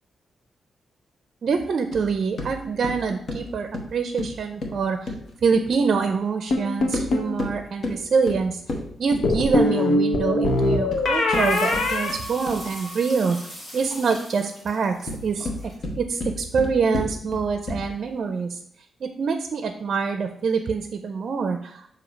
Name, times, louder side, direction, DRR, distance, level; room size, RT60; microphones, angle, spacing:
voice 1, 1.4-5.1 5.4-8.6 9.0-13.4 13.7-15.5 16.0-18.6 19.0-21.9, right 5 dB, 55° right, 6 dB, 0.5 m, -25 dB
sound 1, 1.9-6.1 6.8-9.8 10.6-12.8 14.9-18.1, left 2 dB, 55° left, 1.1 m, -33 dB
sound 2, 6.5-7.3 9.2-13.0, left 2 dB, 75° left, 0.8 m, -23 dB
sound 3, 11.3-15.8, equal, 30° left, 2.2 m, -41 dB
6.8 x 2.8 x 5.2 m, 0.68 s
cardioid pair, 110°, 0 cm